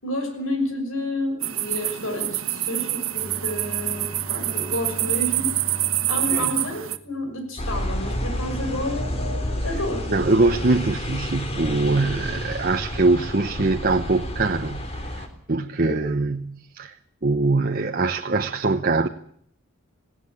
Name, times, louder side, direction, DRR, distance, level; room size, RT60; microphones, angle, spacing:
voice 1, 0.0-5.6 6.1-10.1 15.8-16.0, left 1 dB, 85° left, 6.2 m, -30 dB
sound 1, 1.4-7.0, right 14 dB, 80° right, 1.4 m, -26 dB
Bowed string instrument, 3.1-8.8, equal, 15° right, 4.7 m, -41 dB
sound 2, 7.6-15.3, equal, 30° left, 3.4 m, -30 dB
voice 2, 10.1-17.0 17.2-19.1, right 3 dB, 45° right, 0.9 m, -23 dB
20.0 x 17.5 x 8.6 m
head